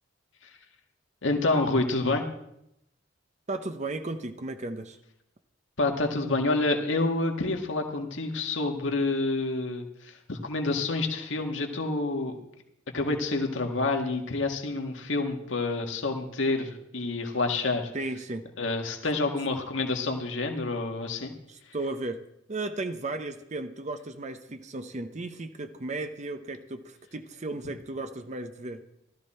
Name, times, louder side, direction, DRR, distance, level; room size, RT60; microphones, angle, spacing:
voice 1, 1.2-2.2 5.8-12.4 12.9-17.9 18.6-21.3, left 2 dB, 85° left, 3 dB, 1.8 m, -28 dB
voice 2, 3.5-5.0 17.9-18.5 21.5-22.2 22.5-28.8, right 2 dB, 40° right, 8 dB, 0.8 m, -35 dB
16.5 x 13.0 x 4.4 m, 0.81 s
head